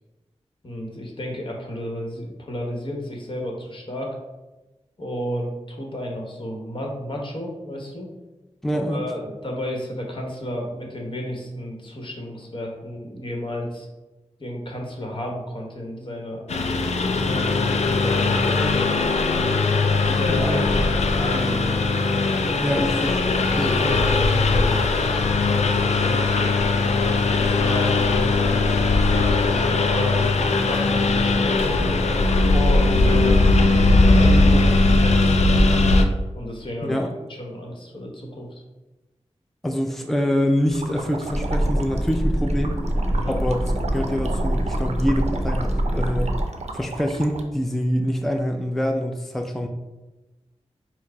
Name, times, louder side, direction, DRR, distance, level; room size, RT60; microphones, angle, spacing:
voice 1, 0.6-4.2 5.0-8.1 8.9-13.9 14.4-16.5 17.3-21.8 22.7-26.3 27.0-28.7 29.1-31.9 32.5-33.4 34.0-35.7 36.3-37.0 37.3-38.6 43.1-43.3, left 1 dB, 45° left, 0 dB, 1.1 m, -32 dB
voice 2, 8.6-9.0 20.2-20.7 22.6-23.2 23.6-24.0 36.8-37.1 39.6-42.8 43.3-46.3 46.7-49.7, equal, ahead, 3 dB, 0.4 m, -25 dB
Engine, 16.5-36.0, left 3 dB, 70° left, 0.4 m, -19 dB
sound 1, 40.7-47.4, right 3 dB, 65° right, 0.5 m, -35 dB
sound 2, 41.3-46.4, equal, 20° left, 1.3 m, -24 dB
4.5 x 2.0 x 4.5 m, 1.1 s
wide cardioid pair, 60°, 12 cm